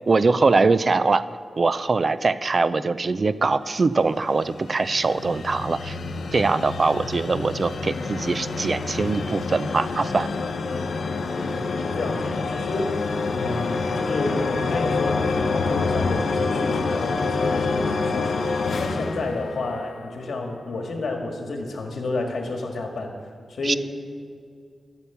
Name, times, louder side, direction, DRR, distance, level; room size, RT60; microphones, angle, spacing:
voice 1, 0.1-1.3 1.6-6.0 6.3-10.3 23.6-23.7, right 3 dB, 35° right, 15 dB, 0.4 m, -22 dB
sound 1, 4.0-20.1, left 4 dB, 85° left, 0.8 m, -27 dB
voice 2, 11.4-13.0 13.3-18.4 18.8-23.1 23.5-23.8, left 2 dB, 65° left, 3 dB, 1.8 m, -30 dB
13.5 x 7.0 x 7.0 m, 2.2 s
wide cardioid pair, 175°, 0 cm